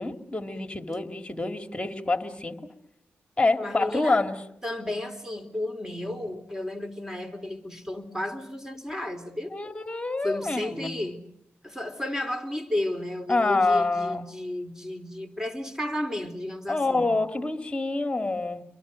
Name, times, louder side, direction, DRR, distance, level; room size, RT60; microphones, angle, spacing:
voice 1, 0.0-2.7 3.4-4.4 9.5-11.0 13.3-14.3 16.7-18.6, left 3 dB, 20° left, 2.6 m, -27 dB
voice 2, 3.6-4.2 4.6-9.5 10.2-11.3 11.6-17.2, left 1 dB, 10° right, 3.6 m, -33 dB
29.5 x 23.5 x 6.5 m
cardioid pair, 65°, 5 cm